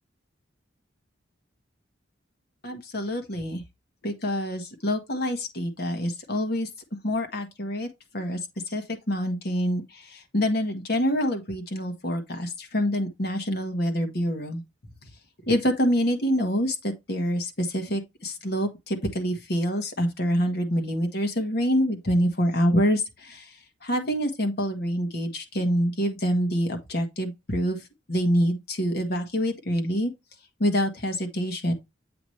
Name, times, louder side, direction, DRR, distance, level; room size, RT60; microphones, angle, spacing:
voice 1, 2.6-3.6 4.0-6.7 7.0-7.9 8.1-8.4 8.7-14.6 15.5-30.1 30.6-31.7, equal, 50° left, 1.5 m, -26 dB
8.2 x 4.8 x 3.2 m
head